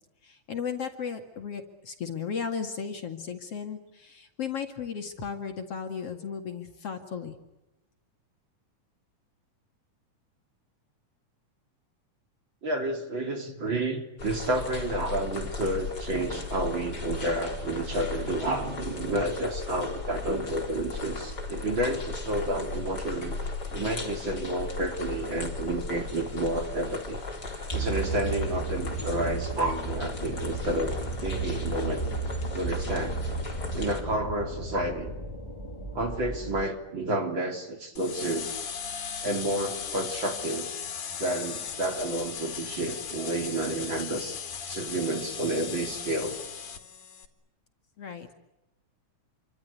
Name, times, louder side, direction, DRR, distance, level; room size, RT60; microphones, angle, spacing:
voice 1, 0.2-7.4 48.0-48.3, left 6 dB, 50° left, 5 dB, 3.0 m, -35 dB
voice 2, 12.6-23.4 23.7-27.2 27.7-32.1 32.5-33.2 33.7-35.1 35.9-38.5 39.2-40.7 41.2-44.4 44.7-46.3, right 1 dB, 35° right, 5 dB, 3.7 m, -30 dB
sound 1, 14.2-34.0, left 3 dB, 30° left, 4.6 m, -37 dB
sound 2, 27.7-36.6, right 3 dB, 10° left, 1.8 m, -34 dB
sound 3, 38.0-47.3, left 7 dB, 70° left, 3.8 m, -37 dB
28.5 x 25.0 x 8.4 m, 0.95 s
omnidirectional pair, 3.6 m